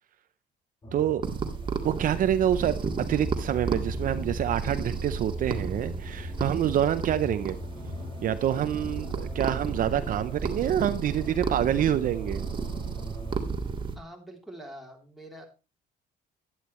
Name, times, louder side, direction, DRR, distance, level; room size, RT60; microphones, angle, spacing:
sound 1, 0.8-13.4, left 1 dB, 25° left, 2.3 m, -39 dB
voice 1, 0.9-1.2 1.8-2.8 3.1-7.6 8.2-12.5, right 10 dB, 55° right, 0.6 m, -27 dB
sound 2, 1.2-14.0, right 5 dB, 30° right, 1.8 m, -33 dB
voice 2, 13.9-15.5, right 1 dB, ahead, 3.3 m, -45 dB
11.5 x 10.5 x 3.1 m
cardioid pair, 110°, 17 cm